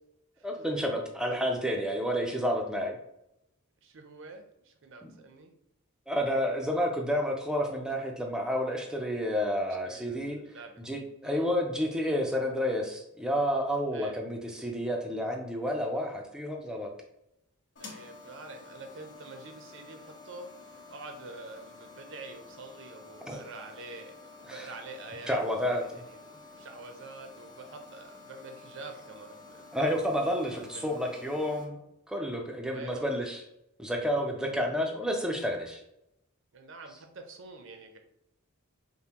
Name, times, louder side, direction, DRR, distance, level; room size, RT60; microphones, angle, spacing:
voice 1, 0.4-3.0 5.0-5.1 6.1-10.4 10.8-16.9 23.2-23.4 24.5-24.7 25.3-26.0 29.7-31.8 32.1-33.4 33.8-35.8, equal, 5° right, 2 dB, 0.5 m, -30 dB
voice 2, 3.8-5.5 9.8-10.8 11.2-11.4 13.9-14.2 17.8-25.4 25.8-26.2 26.5-30.0 30.4-31.3 32.7-33.1 34.4-34.6 36.5-38.0, right 3 dB, 60° right, 5 dB, 0.6 m, -46 dB
sound 1, 17.8-31.7, left 3 dB, 60° left, 1.1 m, -50 dB
5.3 x 2.2 x 2.9 m, 0.82 s
head